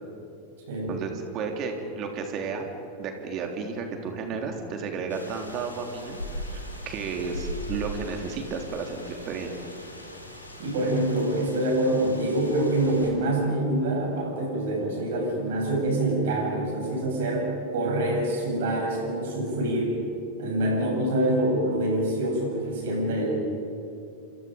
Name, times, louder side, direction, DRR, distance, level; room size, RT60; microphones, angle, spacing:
voice 1, 1.3-2.7 3.0-6.6 6.9-9.5, right 5 dB, 35° right, 3 dB, 3.6 m, -32 dB
sound 1, 5.1-13.1, equal, 85° left, 3.7 m, -40 dB
voice 2, 10.6-20.0 20.4-23.3, right 1 dB, 55° right, 0 dB, 7.8 m, -26 dB
29.0 x 26.5 x 5.3 m, 2.6 s
figure-of-eight pair, 90°, 0 cm